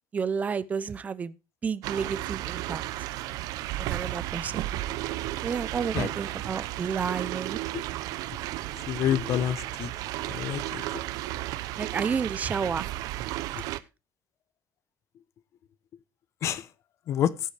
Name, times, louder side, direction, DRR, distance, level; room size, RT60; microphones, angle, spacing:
voice 1, 0.1-1.4 1.6-2.8 3.8-4.7 5.4-7.6 11.8-12.9, right 6 dB, 25° right, 0.6 m, -31 dB
sound 1, 1.8-13.8, right 16 dB, 85° right, 0.7 m, -34 dB
voice 2, 8.9-9.9 10.4-10.8 16.4-16.6 17.1-17.3, left 10 dB, 55° left, 0.9 m, -27 dB
16.5 x 7.3 x 3.4 m
cardioid pair, 155°, 6 cm